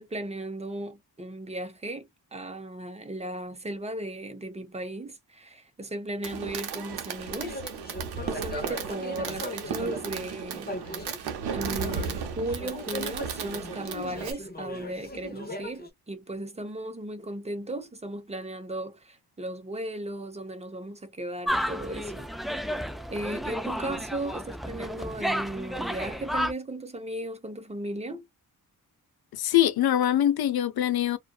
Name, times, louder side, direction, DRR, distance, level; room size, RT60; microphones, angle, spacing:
voice 1, 0.0-7.6 8.3-11.1 11.5-22.8 23.1-28.3, right 1 dB, 15° right, 0.8 m, -36 dB
Fireworks, 6.2-14.3, right 6 dB, 85° right, 0.8 m, -35 dB
sound 1, 7.2-10.2 10.5-12.2 12.5-15.9, left 1 dB, 25° left, 0.8 m, -39 dB
sound 2, 21.5-26.5, equal, ahead, 0.3 m, -32 dB
voice 2, 29.3-31.2, left 12 dB, 75° left, 0.6 m, -23 dB
2.5 x 2.3 x 2.3 m
wide cardioid pair, 100°, 38 cm